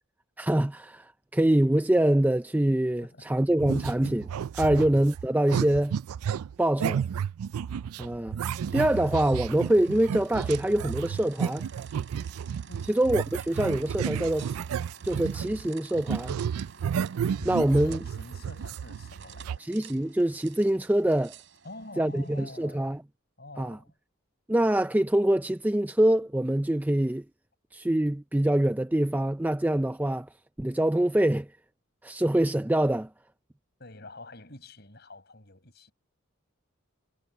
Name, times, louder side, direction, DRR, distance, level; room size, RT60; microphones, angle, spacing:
voice 1, 0.4-4.3 4.5-6.0 6.6-7.0 8.0-8.4 8.7-11.7 12.9-14.5 15.1-16.4 17.4-18.0 19.6-21.3 22.0-23.0 23.6-23.8 24.5-27.2 27.7-30.3 30.6-31.5 32.0-33.1, right 1 dB, 10° right, 0.3 m, -25 dB
voice 2, 3.0-3.3 8.5-8.6 12.7-13.0 17.8-19.6 21.6-22.9 23.4-24.0 33.8-35.9, left 2 dB, 50° left, 6.8 m, -47 dB
sound 1, 3.6-15.7 15.9-19.6, right 7 dB, 90° right, 0.4 m, -32 dB
sound 2, 8.4-22.9, right 5 dB, 55° right, 5.2 m, -50 dB
head